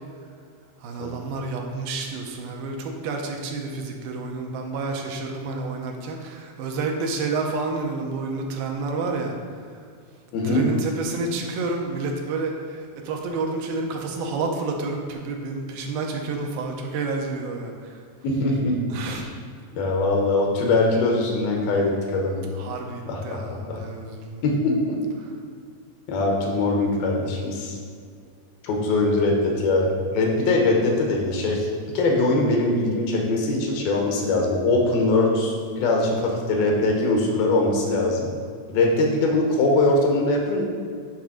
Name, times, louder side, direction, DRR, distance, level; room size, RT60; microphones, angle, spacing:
voice 1, 0.8-9.4 10.4-12.8 13.0-17.7 18.9-19.2 22.6-24.4 28.9-29.0, right 3 dB, 80° right, 2 dB, 2.5 m, -29 dB
voice 2, 10.3-10.7 18.2-18.8 19.1-19.3 19.7-22.4 23.1-23.8 24.4-25.0 26.1-27.8 28.6-31.7 31.9-38.3 38.7-40.6, left 2 dB, 85° left, 0 dB, 3.0 m, -22 dB
8.8 x 3.5 x 6.3 m, 2.1 s
omnidirectional pair, 4.1 m